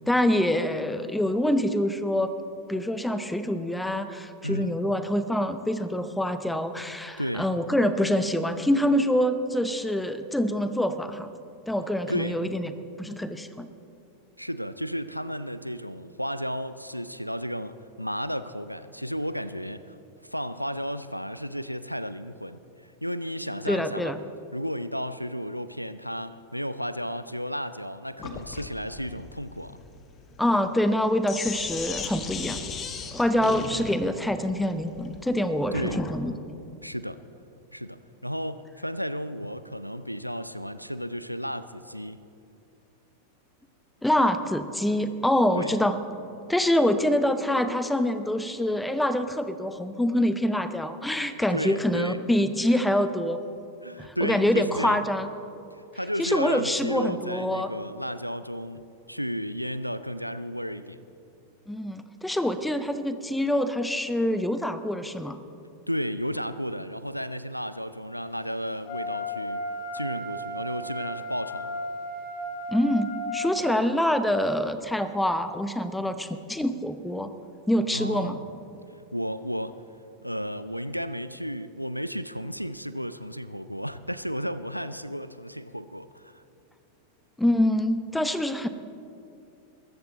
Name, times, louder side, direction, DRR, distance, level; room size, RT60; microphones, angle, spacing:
voice 1, 0.1-2.3 2.7-11.3 11.7-12.7 13.0-13.7 23.7-24.2 30.4-32.6 33.1-36.3 44.0-46.0 46.5-53.4 54.0-55.3 56.2-57.7 61.7-65.4 72.7-77.3 77.7-78.4 87.4-88.7, left 1 dB, 5° left, 11 dB, 0.8 m, -25 dB
voice 2, 4.4-4.7 7.2-7.5 12.1-12.4 14.4-20.0 20.2-24.1 24.5-29.8 35.7-36.0 36.8-37.2 37.7-42.3 45.6-45.8 51.5-52.2 53.8-55.2 55.7-61.0 65.9-69.6 69.9-71.8 77.9-78.4 79.1-79.8 80.2-86.4, equal, 90° left, 14 dB, 0.4 m, -33 dB
Sink (filling or washing), 28.2-36.2, left 5 dB, 25° left, 1.2 m, -37 dB
Wind instrument woodwind instrument, 68.8-73.5, equal, 50° left, 3.1 m, -34 dB
22.5 x 14.0 x 4.0 m, 2.6 s
figure-of-eight pair, 90°, 0 cm